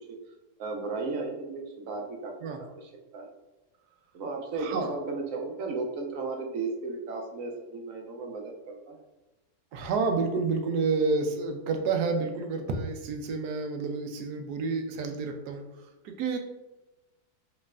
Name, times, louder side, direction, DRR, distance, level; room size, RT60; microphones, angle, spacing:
voice 1, 0.6-3.3 4.1-9.0, right 3 dB, 65° right, 2 dB, 1.0 m, -35 dB
voice 2, 4.6-4.9 9.7-15.6 16.0-16.4, right 4 dB, 90° right, 5 dB, 1.2 m, -29 dB
5.3 x 3.2 x 2.4 m, 1.1 s
omnidirectional pair, 1.7 m